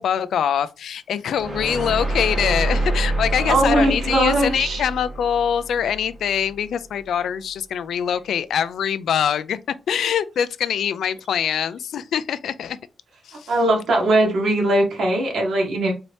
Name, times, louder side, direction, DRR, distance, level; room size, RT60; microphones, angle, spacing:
voice 1, 0.0-9.6 9.9-12.8 13.3-13.5, left 8 dB, 80° left, 0.4 m, -24 dB
sound 1, 1.4-6.4, right 1 dB, 30° right, 2.4 m, -26 dB
voice 2, 3.4-4.8 13.5-15.9, right 1 dB, 65° right, 1.8 m, -20 dB
4.2 x 2.8 x 3.1 m
wide cardioid pair, 150°, 0 cm